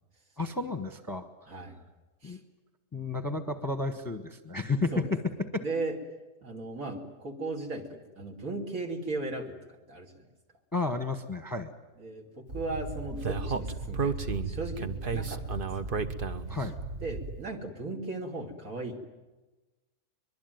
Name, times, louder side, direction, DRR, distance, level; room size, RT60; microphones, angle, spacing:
voice 1, 0.4-1.3 2.2-2.4 2.9-5.2 5.5-5.6 10.7-11.7 16.5-16.7, left 3 dB, 15° left, 8 dB, 1.1 m, -32 dB
voice 2, 1.5-1.8 2.2-2.4 4.9-5.1 5.6-6.0 6.4-9.5 9.9-10.1 12.0-14.2 14.5-16.0 17.0-19.0, right 2 dB, 60° right, 2 dB, 3.2 m, -36 dB
Speech, 12.5-17.4, right 4 dB, 40° right, 1.0 m, -33 dB
23.5 x 22.5 x 9.3 m, 1.2 s
omnidirectional pair, 1.7 m